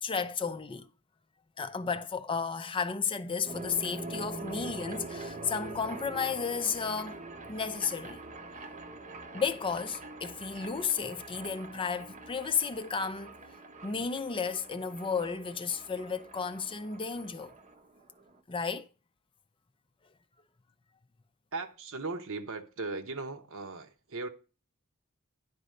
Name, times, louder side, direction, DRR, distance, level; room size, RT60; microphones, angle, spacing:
voice 1, 0.0-0.9 1.6-7.2 7.5-8.2 9.3-13.4 13.8-17.5 18.5-18.9, left 5 dB, 25° left, 0.5 m, -33 dB
sound 1, 3.4-18.4, right 2 dB, 35° right, 0.8 m, -44 dB
voice 2, 21.5-24.3, right 3 dB, 65° right, 0.9 m, -38 dB
10.5 x 4.0 x 6.4 m
head